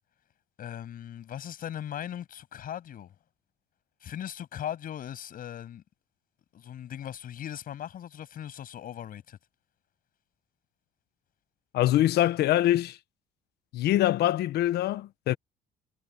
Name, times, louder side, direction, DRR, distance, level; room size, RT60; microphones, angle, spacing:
voice 1, 0.6-3.1 4.0-5.8 6.5-9.4, left 10 dB, 55° left, 7.9 m, -39 dB
voice 2, 11.7-13.0 13.7-15.4, left 13 dB, 75° left, 1.2 m, -24 dB
cardioid pair, 110°, 17 cm